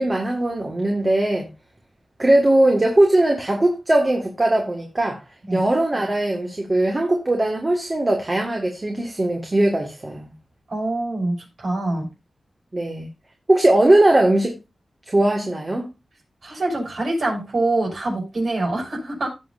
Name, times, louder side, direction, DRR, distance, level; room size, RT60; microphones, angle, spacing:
voice 1, 0.0-1.5 2.2-5.2 5.5-10.3 12.7-13.1 13.5-14.6 15.1-15.9, right 1 dB, 30° right, 1 dB, 1.8 m, -19 dB
voice 2, 10.7-12.0 16.4-19.3, right 2 dB, 55° right, 0 dB, 6.3 m, -25 dB
16.5 x 6.4 x 2.6 m, 0.25 s
wide cardioid pair, 120°, 0 cm